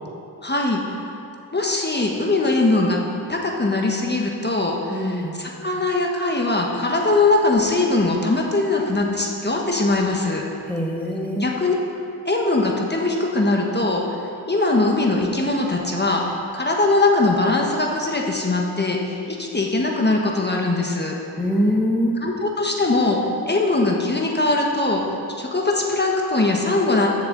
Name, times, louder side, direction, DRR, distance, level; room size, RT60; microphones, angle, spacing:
voice 1, 0.4-0.8 1.5-3.0 3.3-10.4 11.4-11.7 12.2-14.0 14.5-21.1 22.2-23.2 23.5-25.0 25.4-27.1, left 2 dB, 25° left, 0 dB, 1.4 m, -21 dB
voice 2, 4.9-5.3 10.7-11.5 21.3-22.2, equal, 5° left, -1 dB, 1.4 m, -23 dB
15.5 x 6.7 x 4.0 m, 2.6 s
cardioid pair, 60°, 39 cm